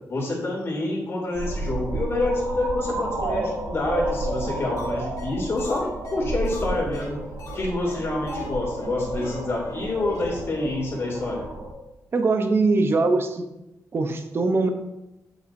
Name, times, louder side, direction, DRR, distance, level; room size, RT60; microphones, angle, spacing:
voice 1, 0.1-7.2 7.5-11.5, left 2 dB, 45° left, -3 dB, 2.6 m, -27 dB
sound 1, 1.3-11.7, right 2 dB, 85° right, 1.3 m, -31 dB
sound 2, 4.8-4.9 5.2-5.3 5.6-7.6 7.9-8.0 8.3-8.5 8.8-8.9 9.2-9.4 9.7-9.8 10.1-10.2 10.6-10.7 10.9-11.0, left 3 dB, 65° left, 1.9 m, -41 dB
voice 2, 12.1-13.4 13.9-14.7, right 3 dB, 40° right, 7 dB, 0.7 m, -21 dB
7.7 x 6.2 x 2.6 m, 0.94 s
cardioid pair, 115°, 6 cm